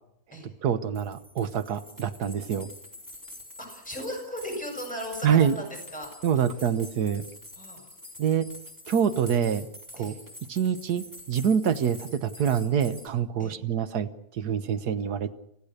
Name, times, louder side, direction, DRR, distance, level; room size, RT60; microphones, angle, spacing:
voice 1, 0.6-2.7 5.2-5.5 6.2-7.2 8.2-8.5 8.9-9.7 10.0-10.1 10.5-15.3, right 8 dB, 80° right, 12 dB, 1.6 m, -26 dB
sound 1, 0.9-13.1, left 1 dB, 10° right, 4.0 m, -46 dB
voice 2, 3.6-6.4 7.6-7.9 10.0-10.2 13.4-13.6, equal, 5° left, 1 dB, 7.7 m, -37 dB
29.5 x 15.0 x 6.7 m, 0.78 s
omnidirectional pair, 1.7 m